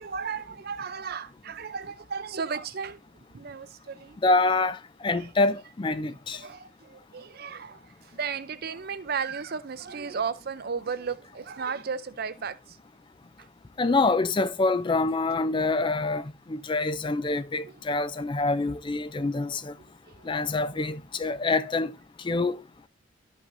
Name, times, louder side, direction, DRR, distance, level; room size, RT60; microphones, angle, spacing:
voice 1, 0.0-3.0 3.3-4.2 6.4-7.8 8.1-12.6 20.2-20.3, right 6 dB, 50° right, 0.5 m, -34 dB
voice 2, 4.2-6.4 13.8-19.7 20.3-21.9 22.2-22.6, left 3 dB, 25° left, 0.4 m, -26 dB
12.5 x 5.5 x 2.6 m
head